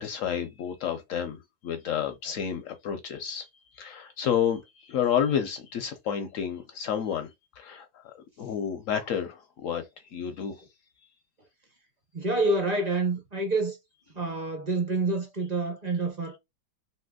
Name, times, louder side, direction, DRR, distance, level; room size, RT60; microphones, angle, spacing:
voice 1, 0.0-3.5 3.7-7.3 7.6-9.8 10.1-10.6, left 8 dB, 70° left, 0.7 m, -30 dB
voice 2, 12.1-13.8 14.1-16.4, right 2 dB, 35° right, 0.7 m, -27 dB
3.4 x 2.7 x 2.2 m
omnidirectional pair, 1.9 m